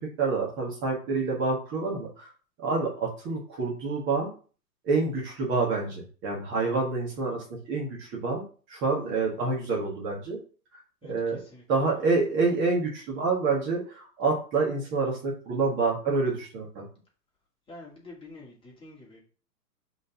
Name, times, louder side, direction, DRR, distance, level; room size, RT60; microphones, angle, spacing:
voice 1, 0.2-2.3 2.6-4.3 4.8-10.4 10.7-10.8 11.1-11.4 11.7-16.9, right 3 dB, 25° right, -2 dB, 1.8 m, -27 dB
voice 2, 11.0-11.6 17.7-19.2, left 2 dB, 10° left, -4 dB, 2.3 m, -47 dB
5.2 x 4.0 x 5.8 m, 0.39 s
figure-of-eight pair, 110°, 48 cm